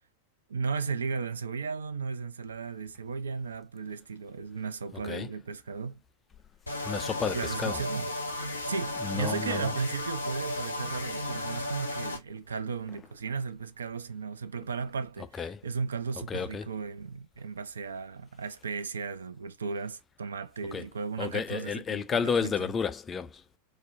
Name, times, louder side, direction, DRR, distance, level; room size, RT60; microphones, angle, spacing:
voice 1, 0.5-6.0 7.3-8.1 8.6-22.5, right 5 dB, 70° right, 0.3 m, -35 dB
voice 2, 4.9-5.3 6.8-7.8 8.5-8.7 9.0-9.7 15.4-15.6 16.3-16.7 20.7-20.8 21.2-23.4, left 6 dB, 20° left, 0.3 m, -32 dB
sound 1, 6.7-12.2, left 2 dB, 80° left, 0.5 m, -34 dB
2.4 x 2.0 x 2.5 m
figure-of-eight pair, 90°, 0 cm